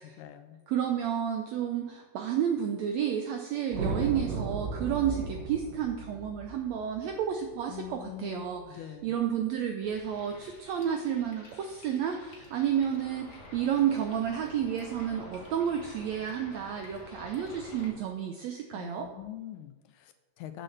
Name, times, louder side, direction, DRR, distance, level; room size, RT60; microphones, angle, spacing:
voice 1, 0.0-0.6 7.7-9.1 18.7-20.6, left 12 dB, 80° left, 9 dB, 1.8 m, -44 dB
voice 2, 0.7-19.1, right 9 dB, 80° right, 4 dB, 1.5 m, -31 dB
sound 1, 3.7-8.1, right 3 dB, 65° right, 1.0 m, -35 dB
sound 2, 9.8-17.9, left 2 dB, 40° left, 1.0 m, -49 dB
7.5 x 6.5 x 6.5 m, 1.2 s
omnidirectional pair, 3.9 m